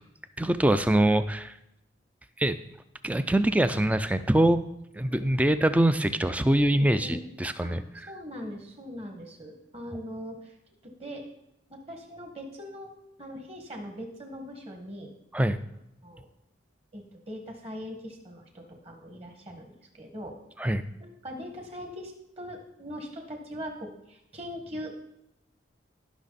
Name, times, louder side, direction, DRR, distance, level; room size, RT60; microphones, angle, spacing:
voice 1, 0.4-1.5 2.4-2.6 3.0-4.6 4.9-7.8 15.3-15.6 20.6-20.8, right 1 dB, 5° right, 11 dB, 0.4 m, -23 dB
voice 2, 6.7-7.2 7.6-10.5 10.8-11.2 11.7-12.9 13.2-15.1 16.0-16.2 16.9-20.4 21.0-25.1, equal, 30° right, 3 dB, 1.8 m, -41 dB
17.0 x 6.0 x 4.1 m, 0.83 s
head